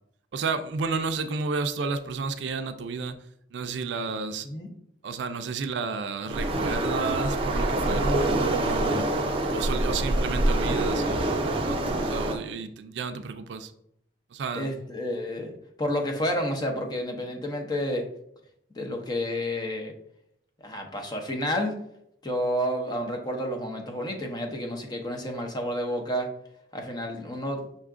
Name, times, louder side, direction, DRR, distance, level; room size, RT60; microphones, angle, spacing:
voice 1, 0.3-3.2 3.5-4.5 5.0-9.1 9.5-13.7 14.3-14.8, right 4 dB, 70° right, 9 dB, 0.4 m, -31 dB
Waves surf, 6.3-12.4, right 1 dB, 30° right, 0.6 m, -26 dB
voice 2, 14.5-15.5 15.8-18.0 18.8-19.9 20.6-21.8 22.2-26.3 26.7-27.6, equal, 25° left, 3 dB, 0.6 m, -30 dB
5.6 x 2.3 x 3.6 m, 0.74 s
head